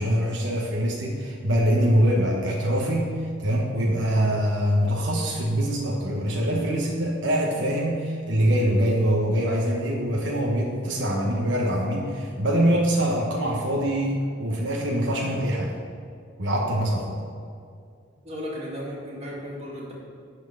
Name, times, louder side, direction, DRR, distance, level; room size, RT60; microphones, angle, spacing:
voice 1, 0.0-15.8 16.4-17.2, equal, 75° right, -2 dB, 1.2 m, -24 dB
voice 2, 18.2-19.9, equal, 35° right, -4 dB, 2.3 m, -35 dB
11.0 x 4.5 x 7.2 m, 2.3 s
head